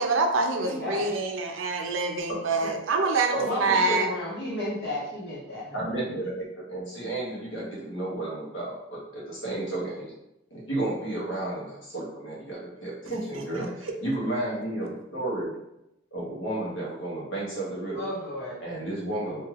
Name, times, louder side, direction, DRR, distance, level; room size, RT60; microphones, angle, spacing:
voice 1, 0.0-4.1, right 3 dB, 80° right, 4 dB, 0.4 m, -26 dB
voice 2, 0.6-1.1 3.4-5.8 17.9-18.6, left 1 dB, 55° left, -8 dB, 1.3 m, -33 dB
voice 3, 5.7-10.1 10.5-15.5 16.1-18.1 18.6-19.5, right 1 dB, 75° left, -5 dB, 1.1 m, -32 dB
3.2 x 2.6 x 2.4 m, 0.86 s
head